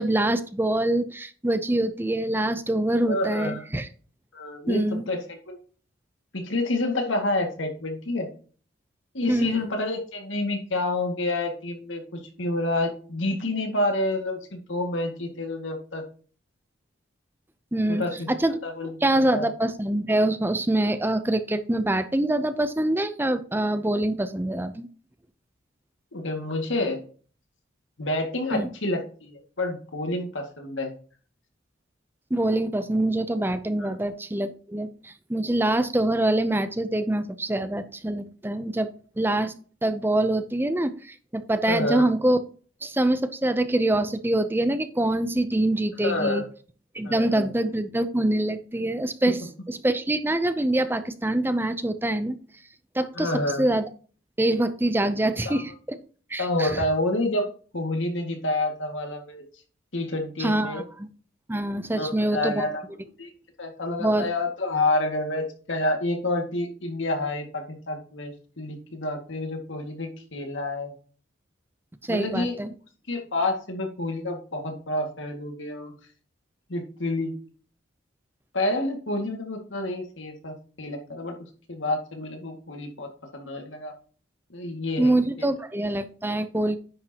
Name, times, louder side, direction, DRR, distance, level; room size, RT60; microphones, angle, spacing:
voice 1, 0.0-3.9 4.7-5.1 9.3-9.6 17.7-18.6 19.0-24.9 28.5-28.7 32.3-39.5 39.8-42.4 42.8-46.4 46.9-49.4 49.7-52.4 52.9-53.3 53.6-53.8 54.4-56.0 56.3-56.8 60.4-61.1 61.5-62.6 64.0-64.3 72.0-72.7 85.0-86.8, right 1 dB, 10° right, 11 dB, 0.5 m, -25 dB
voice 2, 3.1-3.6 4.3-5.6 6.3-8.3 9.1-16.0 17.9-18.3 18.6-19.5 26.1-27.0 28.0-30.9 33.8-33.9 41.7-42.1 46.0-46.4 47.0-47.5 49.2-49.3 53.2-53.7 55.5-55.6 56.4-57.4 57.7-59.4 59.9-60.8 61.9-62.8 63.2-63.3 63.6-70.9 72.1-72.6 73.1-75.9 76.7-77.3 78.5-81.3 81.7-83.9 84.5-85.1 85.4-85.5, left 2 dB, 75° left, 3 dB, 2.1 m, -28 dB
10.0 x 6.4 x 2.9 m, 0.41 s
head